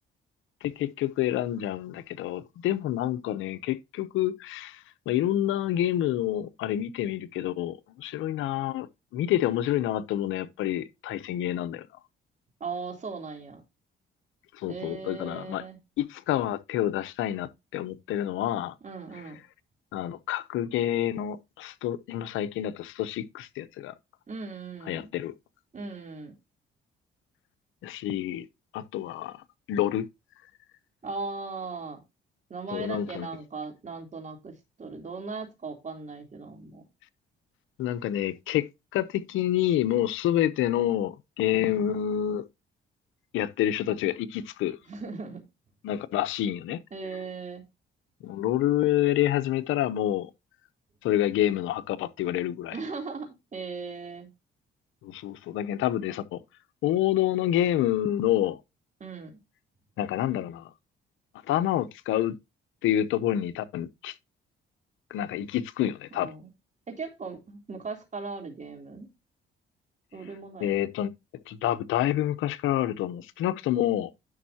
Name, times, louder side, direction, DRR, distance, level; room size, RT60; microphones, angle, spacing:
voice 1, 0.6-8.9 9.1-11.9 14.6-15.6 16.0-18.7 19.9-23.9 24.9-25.3 27.8-28.5 28.7-29.4 29.7-30.1 32.7-33.3 37.8-42.4 43.3-44.8 45.8-46.8 48.2-50.3 51.0-52.8 55.0-56.4 56.8-58.6 60.0-60.6 61.5-62.4 62.8-64.1 65.1-66.3 70.6-71.1 71.5-74.1, left 12 dB, 90° left, 0.8 m, -28 dB
voice 2, 12.6-13.6 14.7-15.8 18.8-19.4 24.3-25.1 25.7-26.3 31.0-32.0 32.5-36.8 41.5-41.9 44.8-45.4 46.9-47.7 52.7-54.3 59.0-59.4 66.1-66.5 66.9-69.1 70.1-70.8, right 4 dB, 40° right, 3.4 m, -38 dB
11.0 x 6.4 x 2.8 m
cardioid pair, 90°, 20 cm